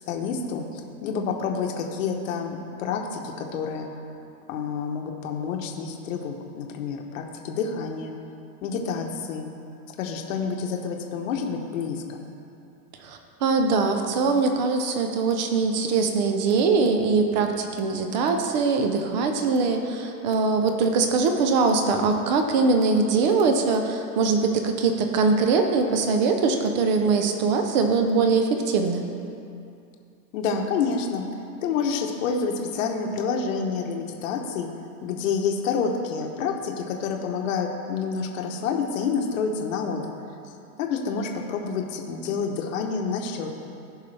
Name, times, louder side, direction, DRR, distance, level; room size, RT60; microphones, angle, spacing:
voice 1, 0.1-3.9 4.5-8.1 8.6-9.5 10.0-12.2 30.3-31.3 31.6-34.7 35.0-40.1 40.8-43.5, left 5 dB, 55° left, 2 dB, 1.0 m, -28 dB
voice 2, 13.0-29.0, right 4 dB, 30° right, 5 dB, 0.6 m, -22 dB
15.5 x 5.5 x 3.3 m, 2.6 s
supercardioid pair, 165°, 47 cm